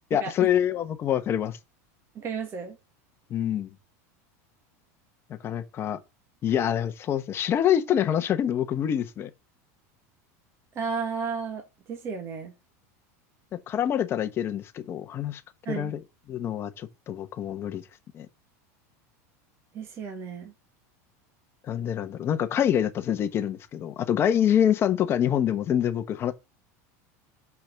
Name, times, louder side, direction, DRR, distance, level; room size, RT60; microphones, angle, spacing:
voice 1, 0.1-1.6 3.3-3.7 5.4-6.0 6.4-9.3 13.5-15.4 15.7-16.0 16.3-17.8 18.1-18.3 21.7-26.3, left 10 dB, 30° left, 1.1 m, -26 dB
voice 2, 2.2-2.8 10.8-11.6 11.9-12.5 15.7-15.9 19.7-20.5, right 5 dB, 30° right, 1.8 m, -33 dB
6.0 x 5.7 x 6.8 m
supercardioid pair, 150°, 8 cm